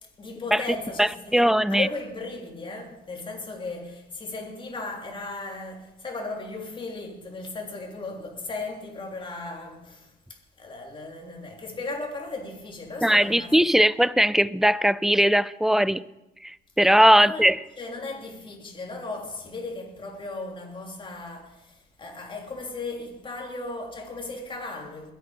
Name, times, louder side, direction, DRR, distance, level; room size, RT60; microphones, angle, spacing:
voice 1, 0.0-13.5 17.2-17.5 17.8-25.1, left 3 dB, 30° left, 3.1 m, -36 dB
voice 2, 1.0-1.9 13.0-16.0 16.4-17.6, equal, ahead, 0.4 m, -20 dB
21.5 x 8.5 x 5.0 m
cardioid pair, 110°, 17 cm